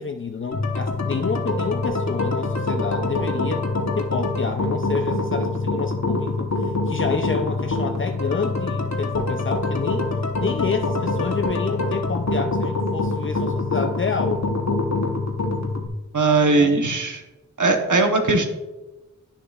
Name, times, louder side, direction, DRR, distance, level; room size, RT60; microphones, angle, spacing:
voice 1, 0.0-3.6 4.0-10.1 10.4-14.4 16.5-16.8, left 5 dB, 40° left, 5 dB, 0.4 m, -29 dB
sound 1, 0.5-15.9, left 2 dB, 60° left, 1.0 m, -25 dB
voice 2, 16.1-17.2 17.6-18.5, right 3 dB, 75° right, 4 dB, 1.0 m, -19 dB
9.8 x 6.5 x 2.4 m, 1.1 s
wide cardioid pair, 50°, 31 cm